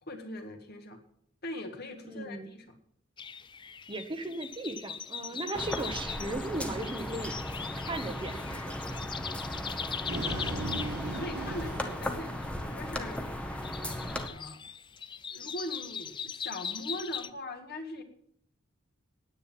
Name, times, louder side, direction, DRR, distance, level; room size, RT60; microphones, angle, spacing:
voice 1, 0.0-1.0 1.4-2.7 5.3-5.4 10.2-13.3 14.0-14.6 15.3-18.0, left 1 dB, 50° left, 5 dB, 1.8 m, -41 dB
voice 2, 2.0-2.5 3.9-7.3 7.8-8.8, right 2 dB, 25° right, 7 dB, 1.0 m, -37 dB
sound 1, 3.2-17.3, left 7 dB, 25° left, 0.4 m, -41 dB
sound 2, 5.5-14.3, left 1 dB, 5° left, 1.1 m, -37 dB
sound 3, 9.7-13.0, right 2 dB, 50° right, 1.9 m, -37 dB
10.0 x 8.9 x 7.6 m, 0.68 s
head